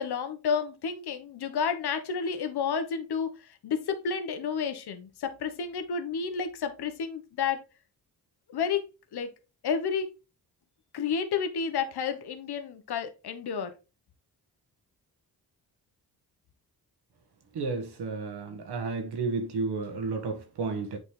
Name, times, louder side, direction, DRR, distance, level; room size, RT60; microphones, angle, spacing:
voice 1, 0.0-3.3 3.6-7.6 8.5-8.8 9.1-9.3 9.6-10.1 10.9-13.7, left 6 dB, 80° left, 1.1 m, -30 dB
voice 2, 17.5-21.0, right 4 dB, 90° right, 1.6 m, -32 dB
8.1 x 4.1 x 3.2 m
cardioid pair, 75°, 38 cm